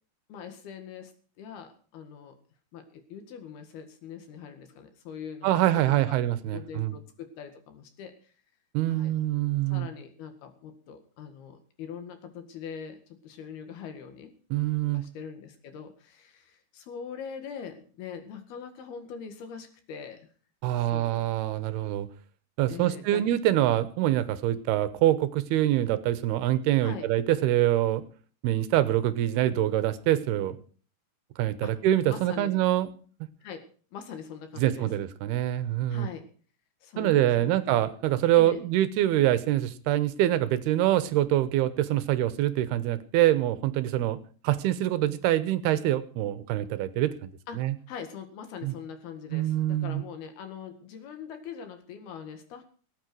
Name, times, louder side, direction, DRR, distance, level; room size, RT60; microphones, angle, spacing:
voice 1, 0.3-2.4 2.7-6.2 6.5-8.3 8.9-9.1 9.7-14.3 14.9-20.3 20.8-21.3 22.7-23.2 26.8-27.1 31.6-31.7 32.1-32.6 33.4-33.7 33.9-34.9 35.9-36.2 36.8-37.8 38.4-38.6 47.5-52.6, left 7 dB, 70° left, 7 dB, 3.7 m, -42 dB
voice 2, 5.4-7.0 8.7-9.9 14.5-15.1 20.6-22.1 22.6-28.0 28.4-30.6 31.4-32.9 34.6-36.1 37.0-44.2 44.4-47.8 48.6-48.7 49.3-50.0, right 13 dB, 80° right, 14 dB, 2.8 m, -25 dB
18.5 x 9.0 x 6.2 m, 0.42 s
omnidirectional pair, 4.7 m